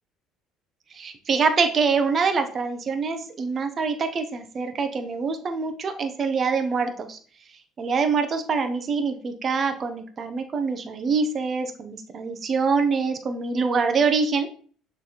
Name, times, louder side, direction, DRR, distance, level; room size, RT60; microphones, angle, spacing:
voice 1, 0.9-7.2 7.8-14.5, right 5 dB, 40° right, 7 dB, 1.0 m, -25 dB
6.6 x 3.5 x 4.3 m, 0.44 s
supercardioid pair, 90°, 0 cm